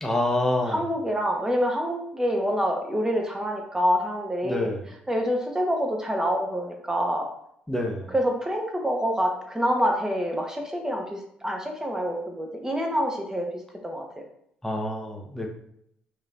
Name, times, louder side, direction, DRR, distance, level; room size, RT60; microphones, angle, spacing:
voice 1, 0.0-0.8 4.4-4.8 7.7-8.1 14.6-15.5, left 1 dB, 10° left, 0 dB, 1.1 m, -27 dB
voice 2, 0.7-4.7 5.1-7.3 8.1-11.0 11.4-13.5 13.8-14.0, equal, 15° right, 1 dB, 1.2 m, -26 dB
5.4 x 3.2 x 2.7 m, 0.73 s
hypercardioid pair, 55°, 4 cm